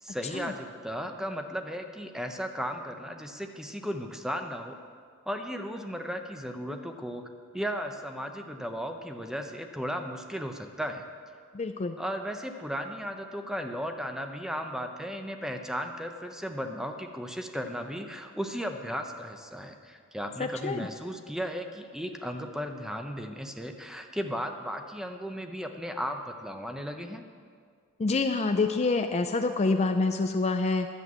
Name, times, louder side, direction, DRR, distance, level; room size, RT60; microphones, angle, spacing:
voice 1, 0.0-4.8 5.3-7.3 7.5-11.0 12.0-27.2, equal, ahead, 5 dB, 0.7 m, -35 dB
voice 2, 11.5-12.0 20.4-20.9 28.0-30.9, left 3 dB, 30° left, 6 dB, 0.4 m, -27 dB
11.0 x 7.8 x 8.1 m, 2.1 s
head